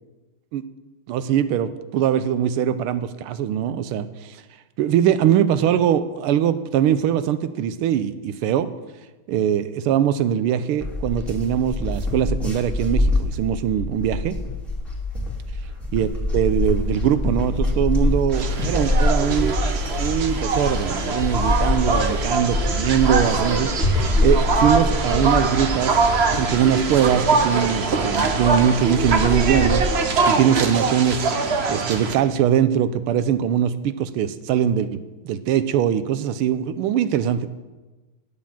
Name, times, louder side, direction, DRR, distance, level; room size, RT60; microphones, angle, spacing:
voice 1, 1.1-4.4 4.8-8.7 9.3-14.4 15.9-19.6 20.0-23.7 24.2-29.9 30.3-31.2 31.7-37.5, right 9 dB, 85° right, 12 dB, 1.6 m, -22 dB
sound 1, 10.8-29.9, left 2 dB, ahead, 2.0 m, -25 dB
sound 2, 18.3-32.2, right 4 dB, 60° right, 0.6 m, -23 dB
9.7 x 8.6 x 7.2 m, 1.2 s
omnidirectional pair, 2.4 m